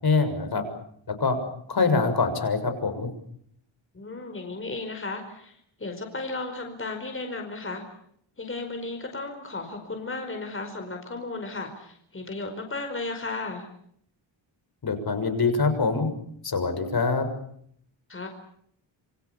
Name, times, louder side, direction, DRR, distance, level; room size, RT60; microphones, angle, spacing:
voice 1, 0.0-0.6 1.1-1.4 1.7-3.1 14.8-16.1 16.4-17.3, left 4 dB, 50° left, 7 dB, 6.7 m, -24 dB
voice 2, 3.9-7.8 8.4-13.7 18.1-18.3, left 3 dB, 25° left, 4 dB, 5.1 m, -34 dB
28.0 x 25.0 x 7.1 m, 0.68 s
wide cardioid pair, 110°, 47 cm